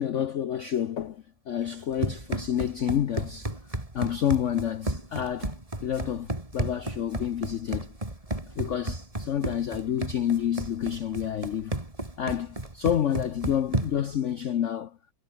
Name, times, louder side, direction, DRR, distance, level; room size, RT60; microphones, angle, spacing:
voice 1, 0.0-3.5 3.9-5.6 5.8-7.9 8.6-11.7 12.2-15.0, left 9 dB, 55° left, 0.8 m, -29 dB
Run, 1.7-14.1, right 1 dB, 20° right, 3.4 m, -33 dB
omnidirectional pair, 2.0 m